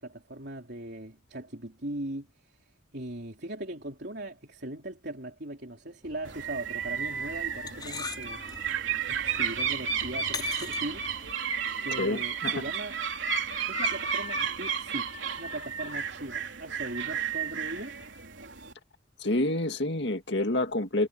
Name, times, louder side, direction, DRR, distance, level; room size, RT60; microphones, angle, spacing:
voice 1, 0.0-8.4 9.1-11.3 11.8-13.0 13.6-17.9, right 1 dB, 55° right, 3.9 m, -39 dB
sound 1, 6.0-11.3, left 4 dB, 20° left, 6.1 m, -43 dB
sound 2, 6.2-18.7, right 6 dB, 75° right, 3.6 m, -32 dB
voice 2, 12.0-12.6 19.2-21.1, left 1 dB, 60° left, 2.1 m, -28 dB
head